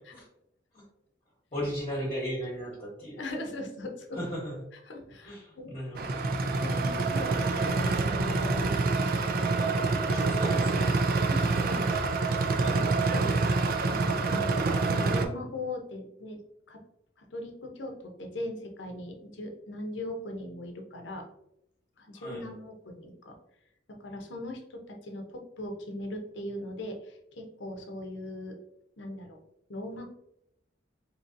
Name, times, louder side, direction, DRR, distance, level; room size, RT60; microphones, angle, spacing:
voice 1, 1.5-3.2 4.1-4.5 5.2-6.3 7.7-8.8 10.0-11.2 22.1-22.5, equal, 35° left, -5 dB, 1.0 m, -37 dB
voice 2, 3.2-4.2 4.8-6.1 6.6-8.8 9.8-9.9 11.3-13.3 13.9-14.6 14.9-16.4 16.7-16.8 17.2-21.2 22.0-23.4 23.9-28.6 29.0-29.4 29.7-30.0, left 1 dB, 80° left, 3 dB, 0.7 m, -40 dB
sound 1, 6.0-15.3, right 3 dB, 55° right, 0.4 m, -26 dB
3.9 x 3.0 x 2.5 m, 0.80 s
head